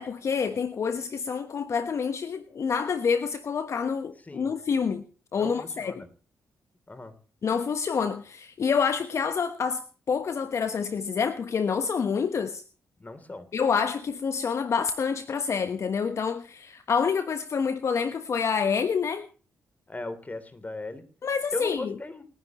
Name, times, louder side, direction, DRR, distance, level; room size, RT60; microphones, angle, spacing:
voice 1, 0.0-5.0 5.3-6.0 7.4-9.8 10.1-12.6 13.5-19.3 21.2-21.9, left 6 dB, 55° left, 1.2 m, -27 dB
voice 2, 5.3-6.1 6.9-7.1 13.0-13.5 19.9-21.0 21.5-22.2, left 2 dB, 25° left, 3.3 m, -37 dB
30.0 x 10.0 x 3.1 m
hypercardioid pair, 40°, 6 cm